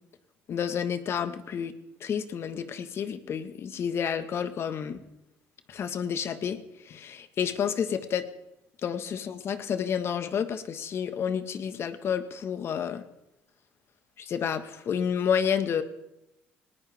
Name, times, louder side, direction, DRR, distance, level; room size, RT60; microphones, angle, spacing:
voice 1, 0.5-1.7 2.0-5.0 5.7-8.3 8.8-13.0 14.2-15.8, left 7 dB, 55° left, 9 dB, 1.5 m, -30 dB
19.0 x 18.5 x 3.5 m, 0.88 s
supercardioid pair, 70°, 5 cm